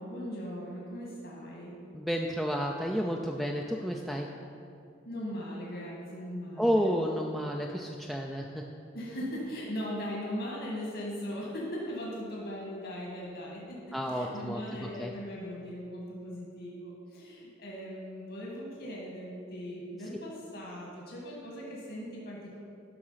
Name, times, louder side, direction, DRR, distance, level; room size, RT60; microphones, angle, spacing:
voice 1, 0.0-1.7 5.0-7.0 8.9-22.6, equal, 65° left, -3 dB, 1.8 m, -39 dB
voice 2, 1.9-4.3 6.6-8.7 13.9-15.1, equal, ahead, 0 dB, 0.4 m, -31 dB
11.0 x 5.9 x 5.7 m, 2.5 s
head